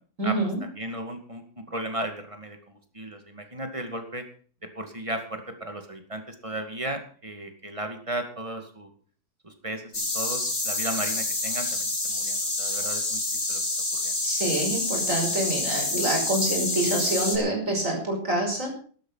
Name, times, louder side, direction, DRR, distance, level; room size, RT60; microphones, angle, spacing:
voice 1, 0.2-0.6 14.2-18.7, right 1 dB, 50° right, 1 dB, 5.7 m, -26 dB
voice 2, 0.7-4.2 4.8-8.9 9.4-13.6 13.9-14.2, right 1 dB, 20° right, 6 dB, 2.3 m, -35 dB
sound 1, 9.9-17.4, left 2 dB, 40° left, 3.1 m, -28 dB
13.0 x 12.0 x 5.7 m, 0.43 s
omnidirectional pair, 1.7 m